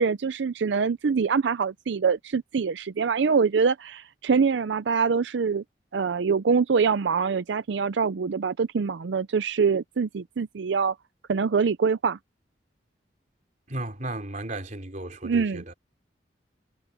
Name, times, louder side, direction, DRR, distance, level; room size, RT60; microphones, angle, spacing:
voice 1, 0.0-5.6 5.9-11.0 11.3-12.2 15.2-15.6, right 5 dB, 85° right, 0.5 m, -24 dB
voice 2, 13.7-15.7, right 1 dB, 45° right, 3.8 m, -35 dB
head